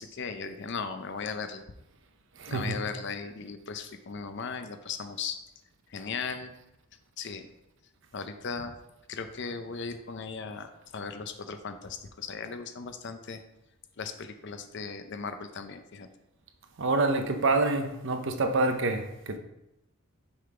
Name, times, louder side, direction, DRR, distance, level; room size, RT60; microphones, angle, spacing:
voice 1, 0.0-1.6 2.5-5.4 5.9-6.5 7.2-7.5 8.1-8.8 9.1-13.4 14.0-16.1, left 5 dB, 50° left, 0.5 m, -37 dB
voice 2, 2.4-2.8 16.8-19.4, right 3 dB, 55° right, 0.6 m, -27 dB
6.2 x 4.0 x 4.7 m
head